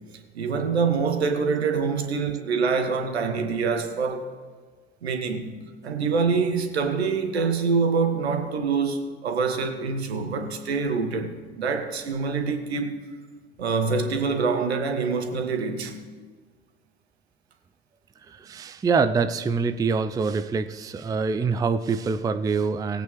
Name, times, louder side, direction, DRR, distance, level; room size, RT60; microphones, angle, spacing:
voice 1, 0.3-4.3 5.0-5.6 5.8-12.9 13.6-15.9, right 5 dB, 75° right, 1.4 m, -25 dB
voice 2, 18.3-23.0, right 5 dB, 10° right, 0.5 m, -25 dB
19.5 x 8.5 x 3.2 m
figure-of-eight pair, 65°, 32 cm